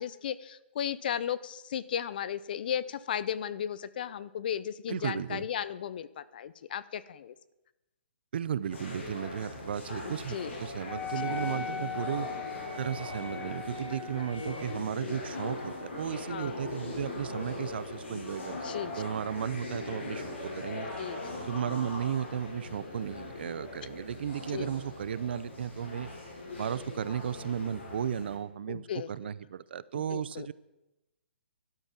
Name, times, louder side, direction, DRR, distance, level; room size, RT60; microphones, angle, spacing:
voice 1, 0.0-7.3 10.1-10.5 13.9-14.3 16.3-16.5 18.6-19.0 21.0-21.2 24.5-24.7 28.7-29.1 30.1-30.5, left 9 dB, 50° left, 18 dB, 0.6 m, -35 dB
voice 2, 4.9-5.4 8.3-12.3 12.8-18.6 18.8-20.9 21.4-26.1 26.5-30.5, right 8 dB, 60° right, 18 dB, 0.6 m, -35 dB
sound 1, 8.7-28.4, left 2 dB, 80° left, 6.5 m, -40 dB
Wind instrument woodwind instrument, 10.9-14.8, left 6 dB, 25° left, 2.0 m, -39 dB
12.0 x 9.2 x 7.4 m, 0.97 s
hypercardioid pair, 160°, 6 cm